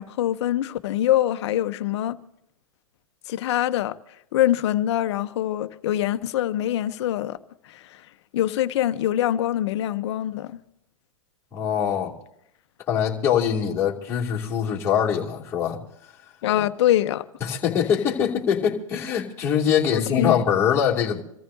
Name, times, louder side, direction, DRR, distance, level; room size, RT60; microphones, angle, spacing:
voice 1, 0.0-2.2 3.3-4.0 4.3-7.4 7.6-8.0 8.3-10.6 16.4-17.2 19.9-20.4, left 12 dB, 50° left, 0.9 m, -24 dB
voice 2, 11.5-12.1 12.9-15.8 17.4-21.2, left 8 dB, 15° left, 2.8 m, -23 dB
27.0 x 14.0 x 2.8 m
hypercardioid pair, 140°, 18 cm